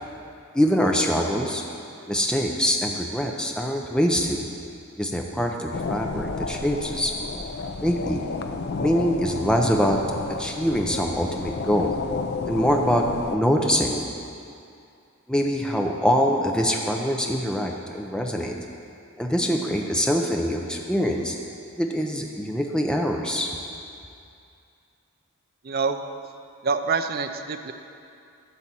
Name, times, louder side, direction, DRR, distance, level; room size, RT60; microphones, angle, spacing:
voice 1, 0.5-1.6 2.1-4.4 5.0-7.1 7.8-8.2 8.8-10.0 10.4-12.0 12.5-13.1 13.3-14.0 15.3-18.6 19.2-21.4 21.8-23.5, equal, 5° left, 1 dB, 0.6 m, -24 dB
sound 1, 5.7-13.4, left 4 dB, 50° left, 0.4 m, -31 dB
voice 2, 25.6-26.0 26.6-27.7, right 5 dB, 45° right, 7 dB, 0.4 m, -26 dB
12.0 x 4.1 x 7.5 m, 2.5 s
head